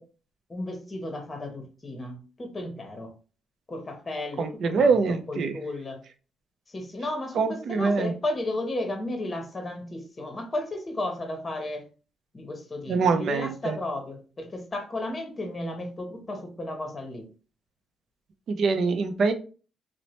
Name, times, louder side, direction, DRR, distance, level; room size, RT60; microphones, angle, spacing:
voice 1, 0.5-3.1 3.7-6.0 6.7-11.8 12.3-17.3, left 1 dB, 25° left, 0.8 m, -34 dB
voice 2, 4.4-5.5 7.4-8.1 12.9-13.8 18.5-19.3, right 4 dB, 60° right, 0.5 m, -24 dB
2.9 x 2.1 x 2.9 m
cardioid pair, 90°, 0 cm